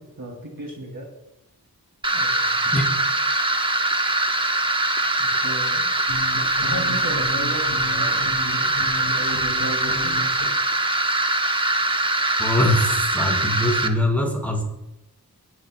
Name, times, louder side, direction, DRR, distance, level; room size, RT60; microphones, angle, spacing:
voice 1, 0.2-1.1 2.1-2.6 5.2-5.9 6.6-10.3, right 1 dB, 60° right, 1 dB, 2.5 m, -35 dB
sound 1, 2.0-13.9, right 2 dB, 15° right, 1.0 m, -22 dB
sound 2, 6.1-10.5, left 1 dB, 70° left, 4.3 m, -34 dB
voice 2, 12.4-14.6, left 1 dB, 5° left, -2 dB, 4.6 m, -22 dB
23.0 x 8.3 x 2.2 m, 0.91 s
cardioid pair, 40°, 39 cm